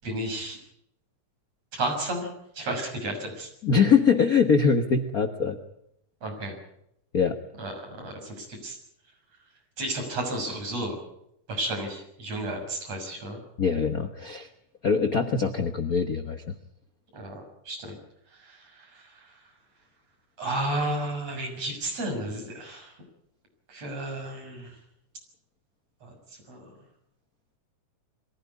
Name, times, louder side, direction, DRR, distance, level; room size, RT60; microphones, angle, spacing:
voice 1, 0.0-0.6 1.7-2.3 2.5-3.5 6.2-6.5 7.6-8.8 9.8-11.0 11.5-13.4 17.1-17.4 17.7-18.0 18.4-19.0 20.4-22.9 23.7-24.8 26.0-26.1 26.5-26.7, right 1 dB, 55° right, 2 dB, 7.5 m, -32 dB
voice 2, 3.6-5.6 7.1-7.4 13.6-14.5 14.8-16.4, left 6 dB, 75° left, 7 dB, 0.8 m, -23 dB
22.5 x 16.5 x 9.6 m, 0.77 s
omnidirectional pair, 3.7 m